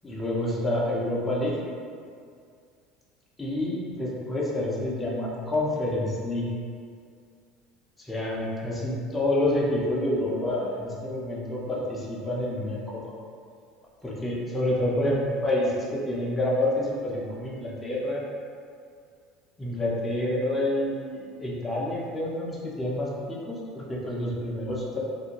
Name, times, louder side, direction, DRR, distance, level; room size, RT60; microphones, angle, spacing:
voice 1, 0.0-1.5 3.4-6.5 8.0-13.0 14.0-18.2 19.6-25.0, left 1 dB, 15° left, -5 dB, 0.6 m, -28 dB
2.5 x 2.1 x 2.9 m, 2.2 s
supercardioid pair, 95°, 0 cm